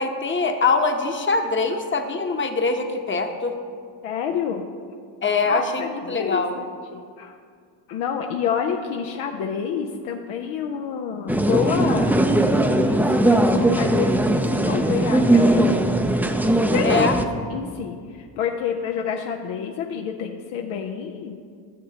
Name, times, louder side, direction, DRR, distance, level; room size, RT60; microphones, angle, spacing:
voice 1, 0.0-3.5 5.2-6.6 16.8-17.1, left 4 dB, 25° left, 5 dB, 0.9 m, -23 dB
voice 2, 4.0-4.7 5.5-7.4 7.9-12.1 12.6-13.0 13.3-15.8 16.6-17.1 17.3-21.4, left 7 dB, 85° left, 2 dB, 0.7 m, -28 dB
sound 1, 11.3-17.2, right 1 dB, 5° right, 0.4 m, -19 dB
13.0 x 6.7 x 2.8 m, 2.1 s
cardioid pair, 80°, 48 cm